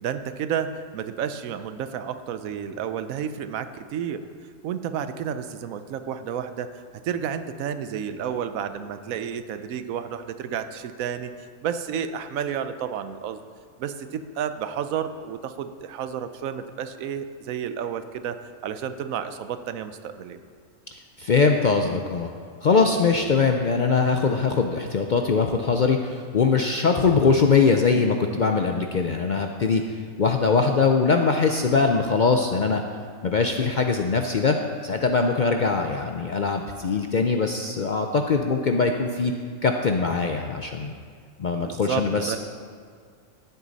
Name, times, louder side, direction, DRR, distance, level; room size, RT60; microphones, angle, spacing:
voice 1, 0.0-4.2 4.6-6.7 7.0-11.3 11.6-13.4 13.8-20.4 41.6-42.4, right 8 dB, 85° right, 10 dB, 1.1 m, -31 dB
voice 2, 21.2-22.3 22.6-29.8 30.2-32.8 33.2-34.6 34.8-39.3 39.6-40.9 41.4-42.4, left 4 dB, 55° left, 4 dB, 0.5 m, -22 dB
15.0 x 8.3 x 4.1 m, 2.1 s
omnidirectional pair, 1.4 m